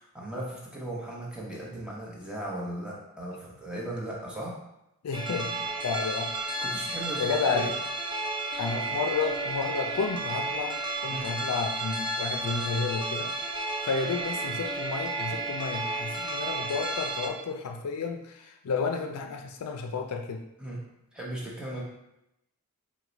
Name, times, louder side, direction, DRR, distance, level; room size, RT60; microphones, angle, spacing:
voice 1, 0.0-4.6 6.6-7.7 11.1-11.4 20.6-21.8, right 1 dB, 5° right, -5 dB, 0.9 m, -37 dB
voice 2, 5.0-6.3 6.7-6.8 7.2-7.7 8.6-13.4 13.8-20.4, left 4 dB, 80° left, 4 dB, 0.4 m, -31 dB
sound 1, 5.1-17.3, right 2 dB, 20° right, 0.4 m, -32 dB
4.6 x 2.2 x 3.9 m, 0.86 s
head